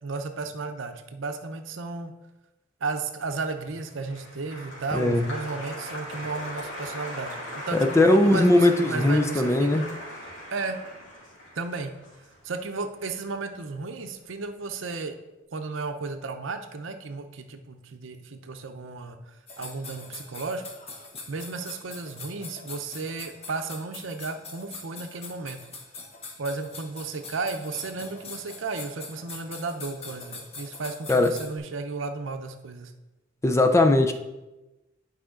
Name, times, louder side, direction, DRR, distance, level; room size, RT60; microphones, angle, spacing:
voice 1, 0.0-2.1 2.8-9.9 10.5-10.8 11.6-11.9 12.4-15.2 15.5-20.6 21.3-25.6 26.4-32.9, right 3 dB, 70° right, 7 dB, 0.7 m, -34 dB
Applause, 3.5-13.9 14.2-14.8, equal, 80° left, 2.5 m, -39 dB
voice 2, 4.9-5.2 7.9-9.8 31.1-31.3 33.4-34.1, left 2 dB, 15° left, 6 dB, 0.5 m, -19 dB
sound 1, 19.5-31.6, left 4 dB, 30° left, 1.0 m, -43 dB
9.5 x 5.0 x 3.8 m, 1.0 s
head